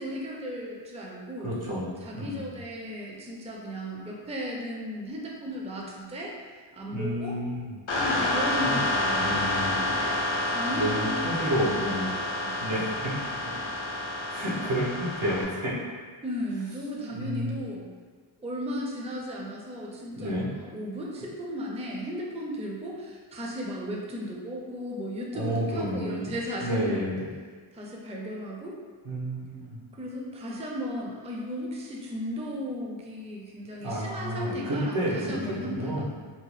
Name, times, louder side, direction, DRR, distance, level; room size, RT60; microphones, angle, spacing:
voice 1, 0.0-1.5 2.0-6.3 6.7-7.4 7.9-10.2 10.4-12.6 16.2-17.9 18.4-27.1 27.7-28.8 29.9-35.9, equal, 15° right, -2 dB, 0.4 m, -36 dB
voice 2, 1.4-2.4 6.9-7.7 8.6-8.8 9.2-9.8 10.7-12.1 12.6-12.8 14.3-15.7 17.1-17.5 20.1-20.5 25.3-27.3 29.0-29.8 33.8-36.1, equal, 85° right, -8 dB, 0.9 m, -30 dB
sound 1, 7.9-15.4, left 1 dB, 65° left, 0.6 m, -29 dB
2.8 x 2.0 x 3.1 m, 1.5 s
wide cardioid pair, 55°, 49 cm